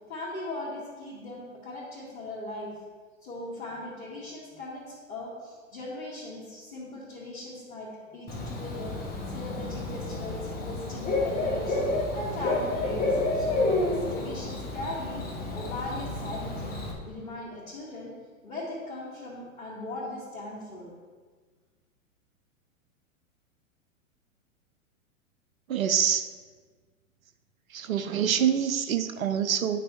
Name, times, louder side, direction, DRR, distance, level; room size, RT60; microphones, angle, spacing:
voice 1, 0.1-2.7 3.2-11.8 12.1-18.1 18.4-20.9, left 1 dB, 75° left, -10 dB, 2.4 m, -39 dB
Bird / Cricket, 8.3-16.9, left 2 dB, 20° left, 1.3 m, -30 dB
voice 2, 25.7-26.3 27.7-29.8, right 8 dB, 80° right, 10 dB, 0.7 m, -26 dB
9.8 x 6.0 x 3.5 m, 1.5 s
hypercardioid pair, 105°, 41 cm